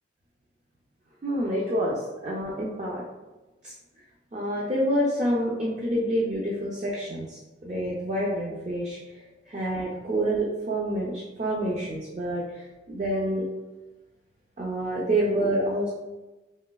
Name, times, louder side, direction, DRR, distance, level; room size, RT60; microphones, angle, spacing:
voice 1, 1.2-3.0 3.6-3.7 4.3-9.0 9.5-12.4 12.9-13.4 14.6-15.9, right 1 dB, 35° right, -4 dB, 0.4 m, -27 dB
3.1 x 2.6 x 2.2 m, 1.1 s
head